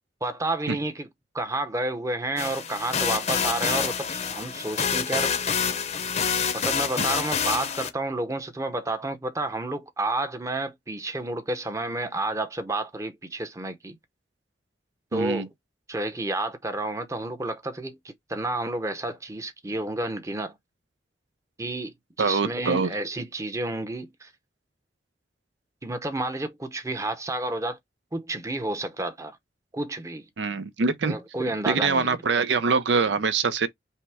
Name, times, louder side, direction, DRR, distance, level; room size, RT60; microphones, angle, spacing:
voice 1, 0.2-1.1 1.3-5.6 6.5-14.0 15.1-15.5 15.9-20.6 21.6-24.3 25.8-27.8 28.1-29.4 29.7-30.2 31.0-32.2, right 2 dB, 20° right, 0.7 m, -30 dB
sound 1, 2.4-7.9, left 6 dB, 40° left, 0.7 m, -27 dB
voice 2, 15.1-15.5 22.2-22.9 30.4-31.2 31.7-33.7, right 4 dB, 90° right, 0.6 m, -24 dB
5.5 x 2.1 x 3.4 m
head